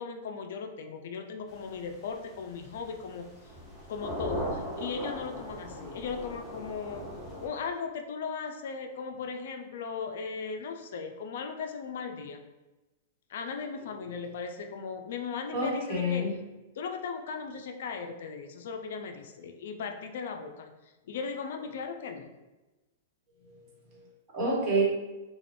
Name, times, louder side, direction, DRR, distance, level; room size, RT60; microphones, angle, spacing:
voice 1, 0.0-3.3 3.9-7.1 7.4-12.4 13.3-16.2 16.8-20.7 21.1-22.3, left 5 dB, 65° left, 5 dB, 0.3 m, -37 dB
sound 1, 1.5-7.5, equal, 5° left, 0.7 m, -39 dB
voice 2, 15.5-16.3 23.4-23.7 23.9-25.0, right 1 dB, 35° right, -4 dB, 1.1 m, -29 dB
2.4 x 2.2 x 3.3 m, 1.1 s
hypercardioid pair, 125°, 0 cm